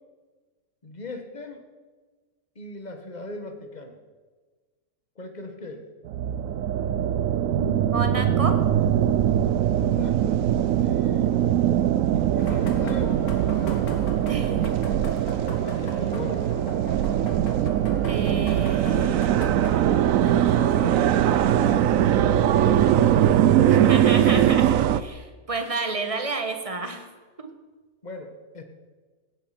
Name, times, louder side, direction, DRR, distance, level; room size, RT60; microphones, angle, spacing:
voice 1, 0.8-1.6 2.5-4.0 5.2-5.9 9.8-10.4 10.8-11.3 12.1-13.3 15.3-16.6 20.2-24.0 28.0-28.6, left 2 dB, 30° left, 6 dB, 1.6 m, -38 dB
sound 1, 6.0-25.0, right 10 dB, 70° right, 1.0 m, -21 dB
voice 2, 7.5-8.6 14.3-14.9 18.0-19.4 23.7-27.1 27.4-27.5, right 3 dB, 25° right, 7 dB, 1.3 m, -30 dB
sound 2, 12.4-21.8, left 3 dB, 75° left, 2.4 m, -42 dB
16.5 x 10.0 x 6.0 m, 1.4 s
omnidirectional pair, 1.6 m